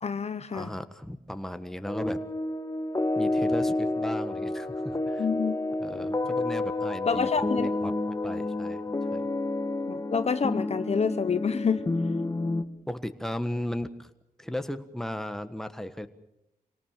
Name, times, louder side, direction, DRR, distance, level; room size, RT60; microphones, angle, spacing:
voice 1, 0.0-0.7 5.2-5.6 7.1-7.7 9.9-11.8, left 6 dB, 45° left, 12 dB, 0.8 m, -27 dB
voice 2, 0.5-2.2 3.1-5.3 5.8-7.9 8.2-8.8 9.1-9.3 12.9-14.1 14.4-16.1, left 1 dB, 5° left, 9 dB, 1.4 m, -36 dB
sound 1, 1.9-12.6, left 2 dB, 20° left, 1.6 m, -29 dB
26.0 x 18.0 x 7.4 m, 0.85 s
cardioid pair, 80°, 15 cm